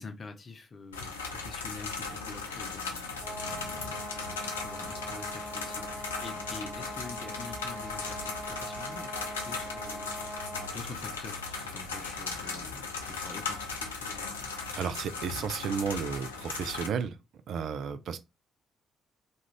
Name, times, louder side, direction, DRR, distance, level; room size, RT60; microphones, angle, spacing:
voice 1, 0.0-3.9 4.3-10.1 10.6-14.4, left 3 dB, 45° left, 0.6 m, -46 dB
sound 1, 0.9-16.9, left 4 dB, 85° left, 0.3 m, -37 dB
sound 2, 3.2-10.9, right 1 dB, 15° right, 1.0 m, -42 dB
voice 2, 14.8-17.2 17.5-18.2, right 6 dB, 60° right, 0.3 m, -33 dB
2.4 x 2.3 x 3.1 m
figure-of-eight pair, 40°, 0 cm